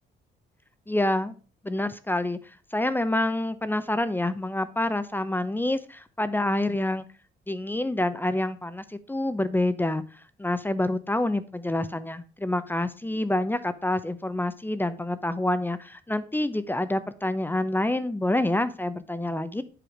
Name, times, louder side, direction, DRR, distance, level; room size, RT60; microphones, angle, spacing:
voice 1, 0.9-1.3 1.6-7.0 7.5-19.6, left 1 dB, 10° left, 0.6 m, -27 dB
7.8 x 4.9 x 4.8 m
cardioid pair, 90°, 20 cm